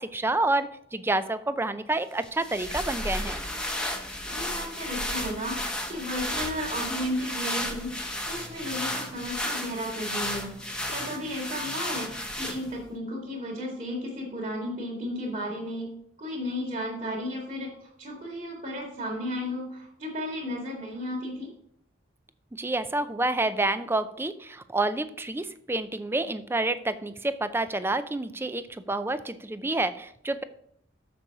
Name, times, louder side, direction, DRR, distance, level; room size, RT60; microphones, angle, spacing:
voice 1, 0.0-3.4 22.6-30.4, right 2 dB, 10° right, 12 dB, 0.5 m, -28 dB
sound 1, 2.2-12.9, left 1 dB, 5° left, 1.0 m, -33 dB
voice 2, 4.3-10.5 10.9-15.9 16.2-21.5, equal, 40° right, -8 dB, 2.6 m, -34 dB
7.0 x 6.8 x 4.8 m, 0.71 s
head